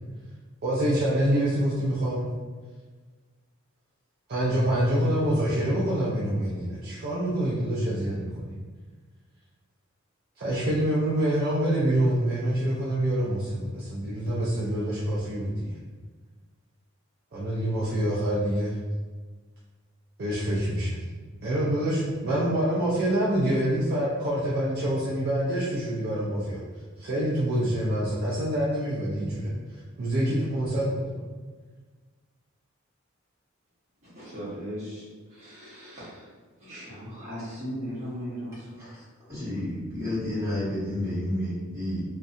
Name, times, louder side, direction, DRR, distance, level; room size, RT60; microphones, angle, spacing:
voice 1, 0.6-2.3 4.3-8.6 10.4-15.8 17.3-18.8 20.2-21.0 21.4-26.6 27.0-29.5 30.0-31.1, right 1 dB, 45° right, -8 dB, 0.4 m, -26 dB
voice 2, 34.0-36.3 36.6-39.1, equal, 30° right, -10 dB, 0.9 m, -38 dB
voice 3, 39.3-42.0, left 1 dB, 15° right, -12 dB, 1.4 m, -30 dB
2.6 x 2.2 x 2.5 m, 1.4 s
head